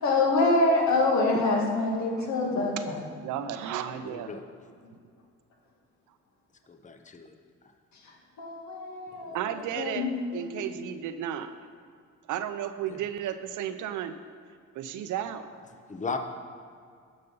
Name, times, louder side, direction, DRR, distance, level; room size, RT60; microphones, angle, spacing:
voice 1, 0.0-3.0 8.4-9.4 9.8-10.7, left 2 dB, 65° left, -1 dB, 2.2 m, -25 dB
voice 2, 1.3-1.7 2.2-2.3 3.2-4.3 9.3-11.5 12.3-14.2 14.7-15.5, right 10 dB, 85° right, 10 dB, 0.7 m, -33 dB
voice 3, 4.0-4.4 6.7-7.4 9.2-9.5 12.9-13.0 15.9-16.2, left 4 dB, 25° left, 6 dB, 0.8 m, -37 dB
12.5 x 5.3 x 5.4 m, 2.2 s
cardioid pair, 90°, 30 cm